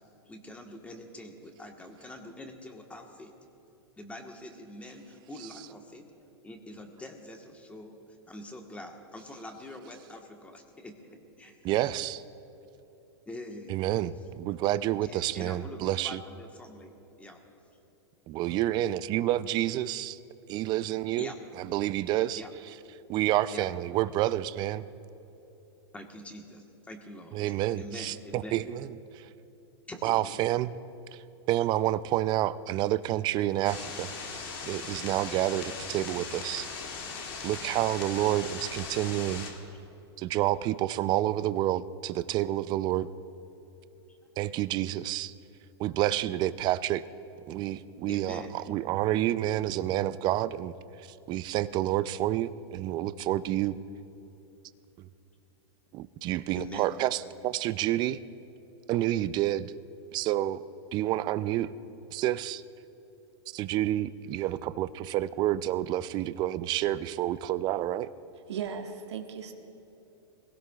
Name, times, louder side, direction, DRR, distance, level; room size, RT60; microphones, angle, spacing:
voice 1, 0.3-3.3 4.0-6.0 6.4-8.0 8.3-11.0 11.4-11.7 13.3-13.8 15.0-17.4 21.2-21.4 22.3-22.5 23.5-23.7 25.9-27.4 27.8-28.6 29.9-30.3 44.1-44.2 48.1-48.5 56.5-57.0, left 1 dB, 10° left, 3 dB, 1.3 m, -44 dB
voice 2, 11.6-12.2 13.7-16.2 18.3-20.2 20.5-21.3 21.6-22.4 23.1-24.8 27.3-29.3 30.0-30.7 31.5-34.1 34.7-36.7 37.4-39.5 40.2-43.1 44.4-45.3 45.8-47.0 47.5-50.7 51.3-53.8 55.0-55.1 55.9-58.2 58.9-59.7 60.1-60.6 60.9-61.7 62.1-62.6 63.5-68.1, right 14 dB, 30° right, 15 dB, 0.4 m, -29 dB
sound 1, 33.6-39.5, left 5 dB, 55° left, 2.4 m, -39 dB
voice 3, 68.5-69.5, right 7 dB, 85° right, 4 dB, 1.2 m, -36 dB
22.5 x 17.0 x 2.4 m, 3.0 s
hypercardioid pair, 130°, 14 cm